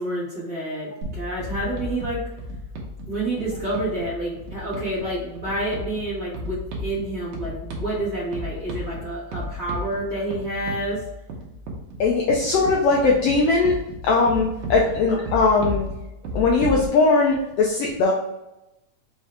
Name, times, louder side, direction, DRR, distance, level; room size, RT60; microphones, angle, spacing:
voice 1, 0.0-2.2 3.1-11.0, right 1 dB, 35° right, -9 dB, 1.6 m, -28 dB
sound 1, 1.0-16.9, equal, 70° right, 1.9 m, -34 dB
voice 2, 12.0-13.7 14.0-15.9 16.3-18.1, left 3 dB, 90° left, -1 dB, 1.3 m, -19 dB
5.5 x 2.7 x 3.3 m, 0.91 s
omnidirectional pair, 3.4 m